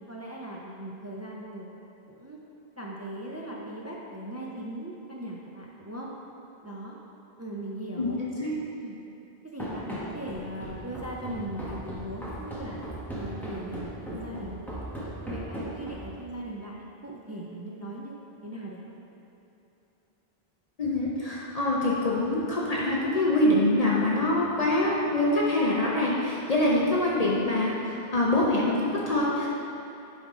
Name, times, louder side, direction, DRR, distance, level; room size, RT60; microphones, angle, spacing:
voice 1, 0.1-1.8 2.1-2.4 2.8-6.1 6.6-7.0 7.4-8.2 8.8-9.0 9.4-12.8 13.1-14.9 15.2-18.8, right 1 dB, 20° right, -3 dB, 0.4 m, -39 dB
voice 2, 8.0-8.5 20.8-29.5, left 1 dB, 45° left, -5 dB, 0.7 m, -25 dB
Run, 9.6-16.2, right 1 dB, ahead, 1.1 m, -37 dB
9.6 x 3.6 x 3.7 m, 2.9 s
omnidirectional pair, 1.0 m